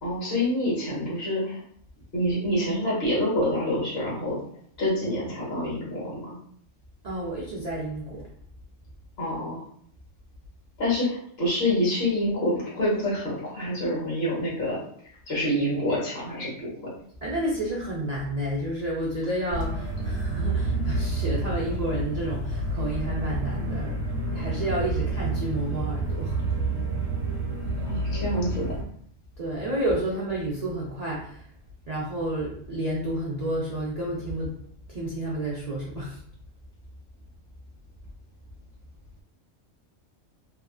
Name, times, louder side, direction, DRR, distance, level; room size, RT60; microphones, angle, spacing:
voice 1, 0.0-1.6 2.1-4.4 4.8-6.4 9.2-9.6 10.8-14.8 15.3-16.7 27.8-28.7, left 1 dB, 50° left, -6 dB, 1.3 m, -27 dB
voice 2, 7.0-8.3 17.2-24.0 24.3-26.6 29.4-31.5 31.9-34.6 34.9-36.2, right 1 dB, 85° right, -4 dB, 0.3 m, -30 dB
sound 1, 19.5-28.8, right 2 dB, 55° right, 1.0 m, -29 dB
2.9 x 2.4 x 2.3 m, 0.63 s
omnidirectional pair, 1.4 m